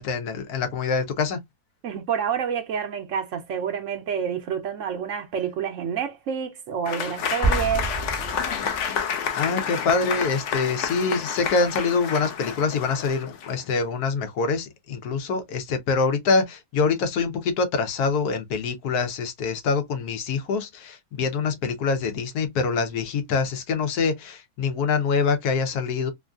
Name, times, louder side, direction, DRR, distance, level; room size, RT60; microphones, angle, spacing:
voice 1, 0.0-1.4 9.3-26.1, left 4 dB, 85° left, 1.3 m, -25 dB
voice 2, 1.8-7.9, right 7 dB, 65° right, 0.8 m, -28 dB
Applause / Crowd, 6.9-13.7, left 7 dB, 65° left, 0.8 m, -29 dB
sound 1, 7.4-9.1, right 3 dB, 30° left, 0.8 m, -28 dB
3.1 x 2.5 x 2.3 m
omnidirectional pair, 1.6 m